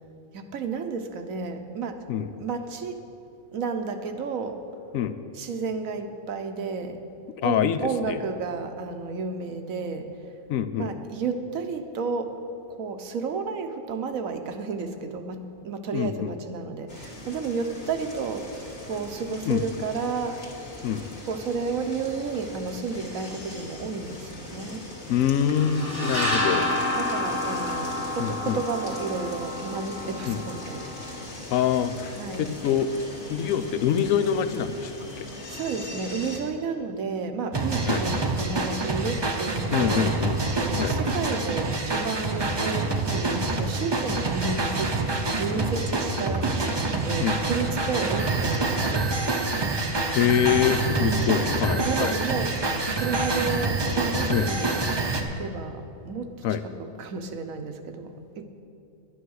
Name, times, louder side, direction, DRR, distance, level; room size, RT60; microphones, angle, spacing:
voice 1, 0.3-2.1 2.4-3.1 3.5-4.6 5.3-7.0 7.4-10.2 10.7-12.4 12.8-20.4 21.3-24.9 26.4-30.9 32.1-32.5 35.5-40.1 40.5-49.4 51.0-51.2 51.6-54.9 55.2-58.4, right 4 dB, 80° right, 7 dB, 1.2 m, -32 dB
voice 2, 7.4-8.2 10.5-10.9 15.9-16.3 19.5-19.6 20.8-21.1 25.1-26.7 28.2-28.6 30.3-30.4 31.5-33.0 33.3-35.3 37.9-38.1 39.7-40.4 40.8-40.9 47.2-47.4 50.1-52.1 54.3-54.5 56.4-56.6, left 9 dB, 80° left, 12 dB, 1.0 m, -25 dB
sound 1, 16.9-36.4, left 1 dB, 50° left, 2.0 m, -40 dB
sound 2, 25.6-31.2, left 1 dB, 25° left, 1.4 m, -29 dB
sound 3, 37.5-55.2, right 2 dB, 25° right, 0.6 m, -26 dB
11.5 x 9.3 x 6.4 m, 2.7 s
omnidirectional pair, 1.4 m